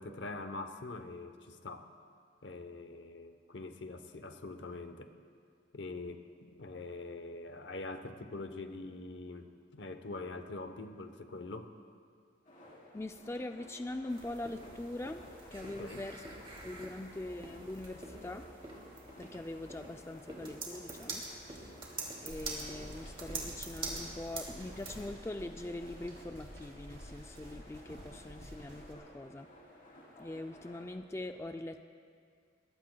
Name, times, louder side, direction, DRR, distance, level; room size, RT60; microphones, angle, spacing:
voice 1, 0.0-1.9 2.4-5.1 5.7-11.7 15.6-16.0, left 2 dB, 65° left, 8 dB, 0.9 m, -44 dB
sound 1, 12.4-30.9, left 1 dB, 45° left, 3.3 m, -56 dB
voice 2, 12.9-16.2 16.6-18.5 19.2-29.5 30.2-31.8, left 1 dB, 15° left, 6 dB, 0.3 m, -43 dB
sound 2, 14.1-25.1, right 3 dB, 30° right, 2.5 m, -45 dB
sound 3, 22.3-28.9, equal, 70° right, 3.6 m, -50 dB
22.5 x 19.5 x 2.3 m, 2.2 s
head